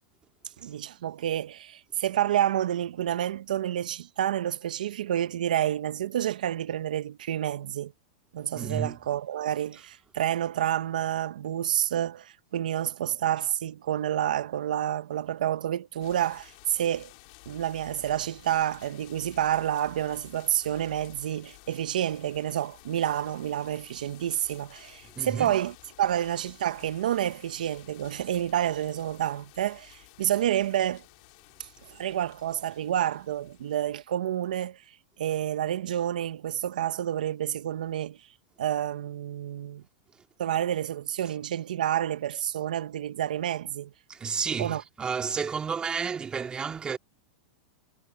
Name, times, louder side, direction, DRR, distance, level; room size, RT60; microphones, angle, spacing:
voice 1, 0.6-7.9 8.3-17.1 17.5-31.0 31.6-34.8 35.2-38.2 38.6-39.8 40.4-43.9 44.6-44.8, right 11 dB, 80° right, 1.3 m, -29 dB
voice 2, 8.5-9.0 25.2-25.5 44.1-47.0, right 6 dB, 20° right, 2.6 m, -31 dB
sound 1, 16.0-34.1, left 29 dB, 55° left, 4.7 m, -53 dB
hypercardioid pair, 115°, 4 cm